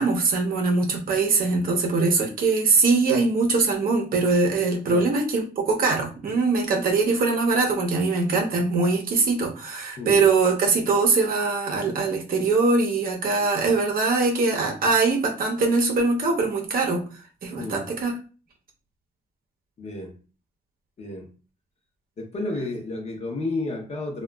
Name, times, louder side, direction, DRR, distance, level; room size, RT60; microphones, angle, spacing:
voice 1, 0.0-17.0 17.4-18.1, right 3 dB, 55° right, 0.7 m, -22 dB
voice 2, 19.8-20.1 21.0-21.3 22.2-24.2, left 2 dB, 40° left, 0.7 m, -31 dB
2.8 x 2.2 x 2.3 m
cardioid pair, 125°, 18 cm